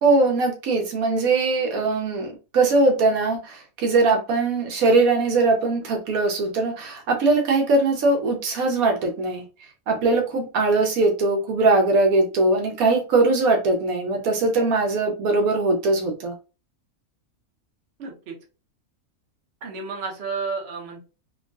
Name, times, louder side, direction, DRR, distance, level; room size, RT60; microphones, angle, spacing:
voice 1, 0.0-9.4 9.9-16.3, right 3 dB, 75° right, 3 dB, 1.1 m, -21 dB
voice 2, 18.0-18.3 19.6-21.0, right 4 dB, 55° right, 1 dB, 1.0 m, -31 dB
3.5 x 2.3 x 2.3 m, 0.31 s
omnidirectional pair, 1.5 m